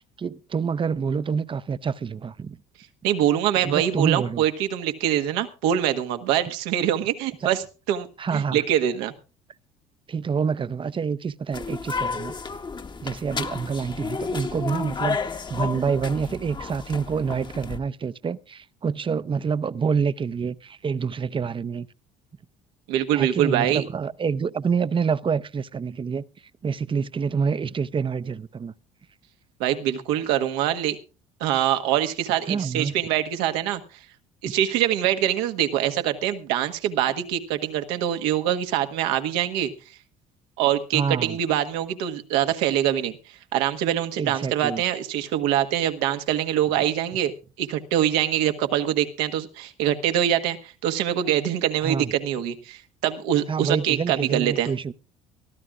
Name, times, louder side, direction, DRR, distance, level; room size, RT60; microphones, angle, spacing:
voice 1, 0.2-2.6 3.6-4.4 7.4-7.5 8.2-8.6 10.1-12.3 13.0-21.9 23.1-26.2 26.6-28.7 32.5-32.9 40.9-41.4 44.2-44.8 51.8-52.1 53.5-54.9, right 6 dB, 30° right, 0.7 m, -27 dB
voice 2, 3.0-8.1 8.3-9.1 22.9-23.8 29.6-31.0 31.4-33.8 34.4-39.7 40.6-47.3 47.6-54.7, right 11 dB, 80° right, 1.5 m, -24 dB
sound 1, 11.5-17.8, left 5 dB, 25° left, 1.1 m, -32 dB
23.5 x 14.0 x 2.5 m
hypercardioid pair, 70°, 17 cm